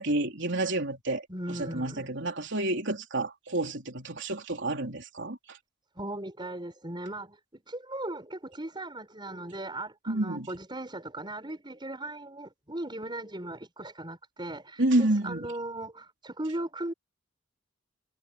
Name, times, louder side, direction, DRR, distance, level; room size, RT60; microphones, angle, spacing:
voice 1, 0.0-1.2 1.5-5.6 10.1-10.5 14.8-15.5, right 2 dB, 60° right, 3.9 m, -29 dB
voice 2, 1.3-2.1 6.0-16.9, right 1 dB, 20° right, 5.8 m, -38 dB
head